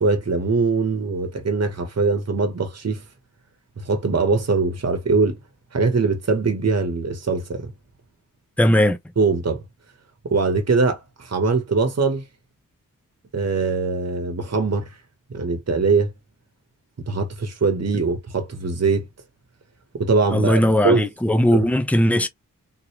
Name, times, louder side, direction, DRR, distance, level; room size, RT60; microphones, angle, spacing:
voice 1, 0.0-3.0 3.8-5.4 5.7-7.7 9.2-9.6 10.2-12.2 13.3-14.9 15.3-16.1 17.1-19.1 19.9-21.0 21.5-21.6, right 4 dB, 50° right, 1.1 m, -22 dB
voice 2, 8.6-9.0 20.3-22.3, equal, 5° left, 0.8 m, -18 dB
3.6 x 3.2 x 2.9 m
wide cardioid pair, 75°, 34 cm